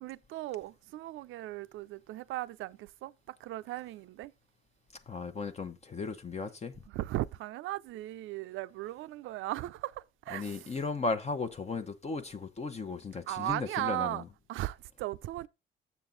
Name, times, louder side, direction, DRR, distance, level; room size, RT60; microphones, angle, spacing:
voice 1, 0.0-3.1 3.4-4.3 6.9-10.6 13.3-14.2 14.5-15.5, right 16 dB, 85° right, 0.5 m, -37 dB
voice 2, 5.1-6.8 10.3-14.3, left 4 dB, 35° left, 0.8 m, -36 dB
7.2 x 7.1 x 3.8 m
cardioid pair, 90°, 20 cm